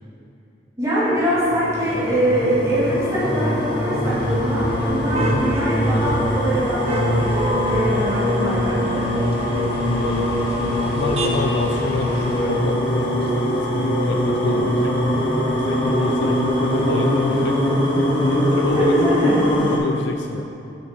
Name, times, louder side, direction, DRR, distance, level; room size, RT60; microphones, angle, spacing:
voice 1, 0.8-9.1 18.7-19.4, equal, 15° right, -10 dB, 1.8 m, -23 dB
sound 1, 1.1-19.8, equal, 30° left, 1.5 m, -22 dB
sound 2, 4.0-12.4, right 1 dB, 35° right, 0.8 m, -30 dB
voice 2, 5.2-5.5 9.9-10.3 10.6-15.0 15.5-17.7 18.2-19.0 19.7-20.5, left 3 dB, 70° left, 4 dB, 0.4 m, -28 dB
7.1 x 5.7 x 6.2 m, 2.8 s
head